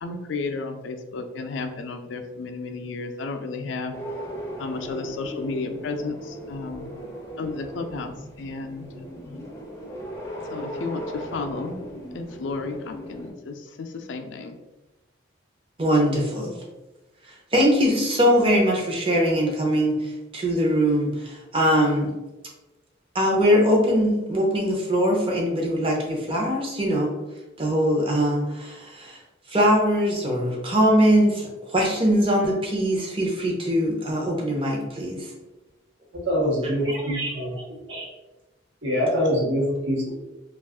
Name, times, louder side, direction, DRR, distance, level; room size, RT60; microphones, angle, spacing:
voice 1, 0.0-3.9 4.6-6.9 7.4-8.9 9.3-9.4 10.5-11.8 12.1-14.6, left 3 dB, 75° left, 6 dB, 0.4 m, -33 dB
sound 1, 3.9-13.3, equal, 15° left, 0.5 m, -37 dB
voice 2, 15.8-16.5 17.5-22.1 23.1-27.1 27.6-29.2 29.5-35.3, equal, 30° right, -1 dB, 0.6 m, -22 dB
voice 3, 36.3-37.6 37.9-38.1 38.8-40.1, equal, 75° right, -3 dB, 1.0 m, -24 dB
2.4 x 2.4 x 3.5 m, 1.1 s
head